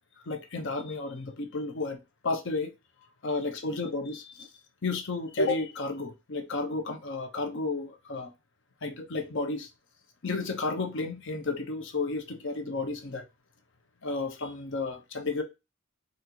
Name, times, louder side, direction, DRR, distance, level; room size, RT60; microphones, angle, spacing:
voice 1, 0.3-2.7 3.2-4.5 4.8-8.3 8.8-9.7 10.2-13.2 14.0-15.4, left 3 dB, 60° left, 0.7 m, -32 dB
4.1 x 2.5 x 2.8 m
head